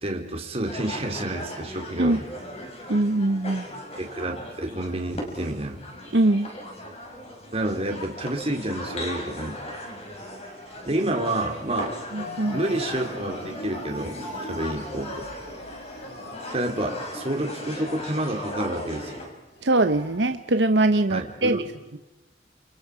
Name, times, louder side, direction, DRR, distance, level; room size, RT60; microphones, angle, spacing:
voice 1, 0.0-2.2 4.0-5.8 7.5-9.6 10.9-11.9 12.5-15.3 16.5-19.2 21.1-21.7, right 1 dB, 35° right, 2 dB, 3.8 m, -29 dB
sound 1, 0.7-19.3, left 1 dB, 35° left, 5.9 m, -37 dB
voice 2, 2.9-3.7 6.1-6.5 12.1-12.6 19.6-21.6, right 2 dB, 70° right, 8 dB, 1.0 m, -22 dB
sound 2, 12.2-20.2, equal, 60° left, 7.4 m, -41 dB
29.5 x 29.5 x 5.0 m, 1.0 s
head